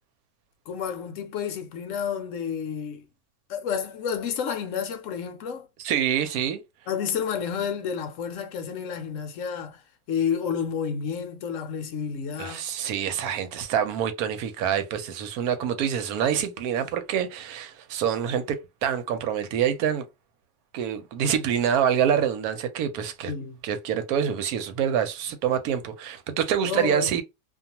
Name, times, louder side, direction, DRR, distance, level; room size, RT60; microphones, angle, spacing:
voice 1, 0.7-3.1 3.5-5.7 6.9-9.8 10.1-12.6 23.3-23.6 26.6-27.1, left 7 dB, 70° left, 0.8 m, -30 dB
voice 2, 5.8-6.6 12.4-20.0 20.7-23.3 23.6-27.2, right 9 dB, 90° right, 1.1 m, -26 dB
2.4 x 2.3 x 2.8 m
omnidirectional pair, 1.5 m